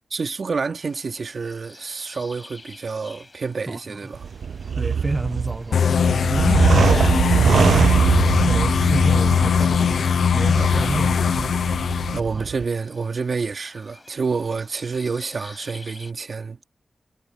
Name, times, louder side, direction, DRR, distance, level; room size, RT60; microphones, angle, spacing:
voice 1, 0.1-4.3 8.9-9.0 12.1-16.7, right 4 dB, 65° right, 2.9 m, -28 dB
sound 1, 0.8-16.1, left 2 dB, 35° left, 7.1 m, -49 dB
voice 2, 3.7-4.1 4.8-7.9 8.5-10.0 10.3-11.3 12.1-12.5, right 2 dB, 25° right, 0.9 m, -29 dB
sound 2, 4.1-12.6, right 6 dB, 85° right, 0.4 m, -22 dB
sound 3, 5.7-12.2, left 7 dB, 90° left, 0.6 m, -20 dB
cardioid pair, 65°, 0 cm